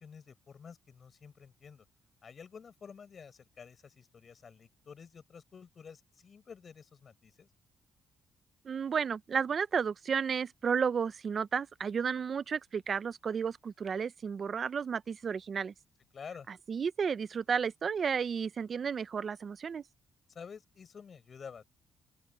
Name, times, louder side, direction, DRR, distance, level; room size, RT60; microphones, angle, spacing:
voice 1, 0.0-1.8 2.2-7.5 16.1-16.5 20.3-21.6, left 6 dB, 45° left, 6.7 m, -50 dB
voice 2, 8.6-15.7 16.7-19.8, right 6 dB, 45° right, 0.7 m, -32 dB
open air
cardioid pair, 90°, 0 cm